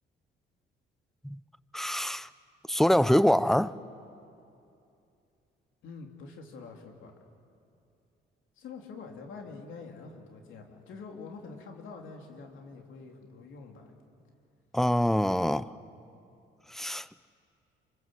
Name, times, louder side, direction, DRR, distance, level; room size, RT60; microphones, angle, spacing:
voice 1, 1.7-2.3 2.7-3.7 14.7-15.7 16.7-17.1, equal, ahead, 0.6 m, -25 dB
voice 2, 5.8-7.1 8.6-13.9, left 4 dB, 80° left, 3.4 m, -46 dB
26.5 x 26.0 x 7.8 m
cardioid pair, 90°, 20 cm